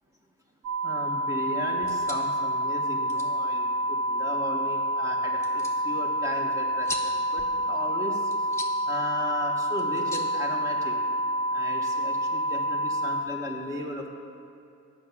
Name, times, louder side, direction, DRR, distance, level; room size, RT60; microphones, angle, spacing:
sound 1, 0.6-13.2, equal, 75° right, 0.8 m, -28 dB
voice 1, 0.8-11.0 11.5-14.1, equal, 10° right, -1 dB, 1.6 m, -36 dB
sound 2, 1.7-11.2, left 1 dB, 10° left, 1.2 m, -44 dB
10.0 x 5.9 x 8.4 m, 2.6 s
cardioid pair, 90°, 30 cm